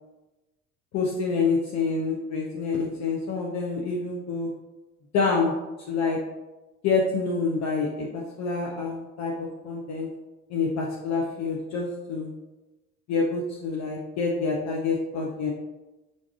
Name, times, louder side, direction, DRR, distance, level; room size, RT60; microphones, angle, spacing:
voice 1, 0.9-4.5 5.1-5.5 5.9-6.2 6.8-10.1 10.5-12.3 13.1-15.5, left 4 dB, 45° left, -2 dB, 0.6 m, -27 dB
4.5 x 2.6 x 2.3 m, 1.1 s
hypercardioid pair, 60°, 38 cm